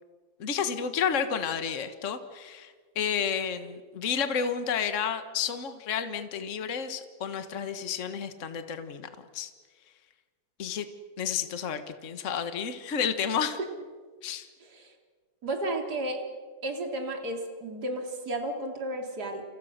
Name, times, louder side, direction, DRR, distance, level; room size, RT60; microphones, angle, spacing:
voice 1, 0.4-9.5 10.6-10.9 11.2-13.6 14.2-14.5, left 7 dB, 75° left, 9 dB, 0.6 m, -31 dB
voice 2, 14.6-14.9 15.4-16.2 16.6-19.4, right 1 dB, 30° right, 3 dB, 3.9 m, -33 dB
29.5 x 29.5 x 6.7 m, 1.5 s
omnidirectional pair, 3.7 m